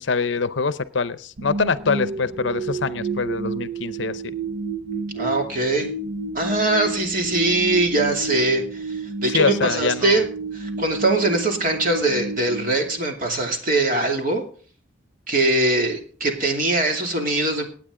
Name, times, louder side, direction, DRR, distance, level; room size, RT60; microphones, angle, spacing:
voice 1, 0.0-4.2 9.3-10.2, left 5 dB, 65° left, 15 dB, 0.7 m, -24 dB
sound 1, 1.4-13.5, right 3 dB, 70° right, 0.7 m, -31 dB
voice 2, 5.1-5.9 6.3-10.2 10.5-14.4 15.3-17.7, right 2 dB, 45° right, 2 dB, 2.6 m, -22 dB
18.0 x 9.0 x 3.8 m, 0.43 s
head